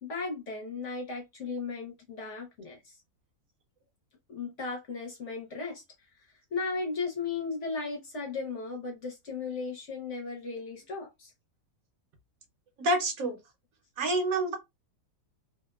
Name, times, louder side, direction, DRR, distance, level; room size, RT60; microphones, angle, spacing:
voice 1, 0.0-2.9 4.3-5.8 6.5-11.3, left 4 dB, 55° left, 0.9 m, -36 dB
voice 2, 12.8-13.4 14.0-14.5, right 1 dB, 70° right, 1.0 m, -27 dB
2.7 x 2.0 x 2.2 m
omnidirectional pair, 1.7 m